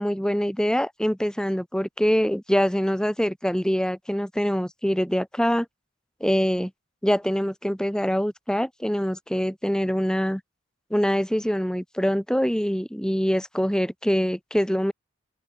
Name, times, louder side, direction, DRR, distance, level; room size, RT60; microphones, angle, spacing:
voice 1, 0.0-5.6 6.2-6.7 7.0-10.4 10.9-14.9, equal, 5° left, 1.6 m, -24 dB
head